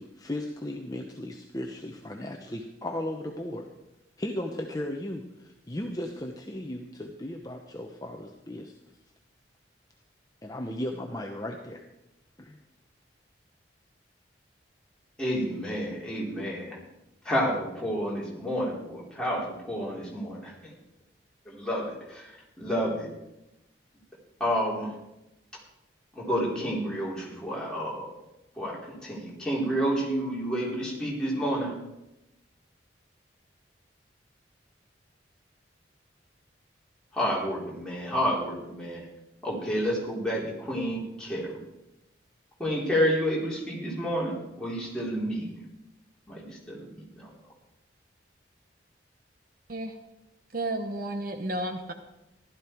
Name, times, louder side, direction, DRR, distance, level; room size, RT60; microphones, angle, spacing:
voice 1, 0.0-3.7 4.2-8.7 10.4-11.8 12.4-12.6, left 1 dB, 20° left, 2 dB, 0.9 m, -36 dB
voice 2, 15.2-16.8 17.2-20.7 21.5-22.3 22.6-23.1 24.4-24.9 26.1-28.1 28.6-31.7 37.1-39.0 39.4-41.6 42.6-45.6 46.3-47.3, equal, 5° left, -5 dB, 3.8 m, -30 dB
voice 3, 50.5-51.9, right 1 dB, 50° right, 6 dB, 1.0 m, -32 dB
15.5 x 12.5 x 4.6 m, 0.92 s
head